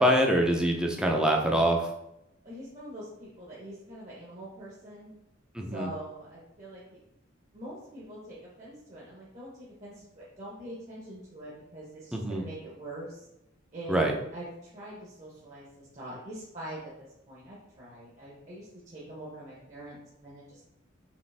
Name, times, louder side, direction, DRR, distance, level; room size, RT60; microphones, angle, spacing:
voice 1, 0.0-1.8 5.5-5.9 12.1-12.4 13.9-14.1, equal, 5° right, 1 dB, 0.5 m, -24 dB
voice 2, 2.4-5.1 5.7-7.0 7.5-13.3 13.7-18.7 18.9-20.6, right 1 dB, 40° right, -6 dB, 1.0 m, -44 dB
5.1 x 3.0 x 3.4 m, 0.84 s
head